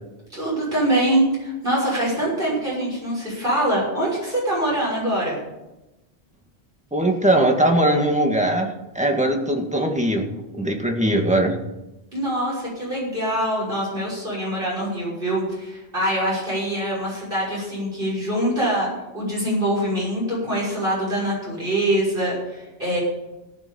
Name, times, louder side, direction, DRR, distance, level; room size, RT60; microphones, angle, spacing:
voice 1, 0.3-5.4 12.1-18.9 19.1-23.0, right 1 dB, 55° right, -6 dB, 6.5 m, -24 dB
voice 2, 6.9-10.3 10.5-11.6, right 1 dB, 5° right, 2 dB, 1.8 m, -20 dB
18.0 x 7.0 x 7.0 m, 0.98 s
omnidirectional pair, 1.1 m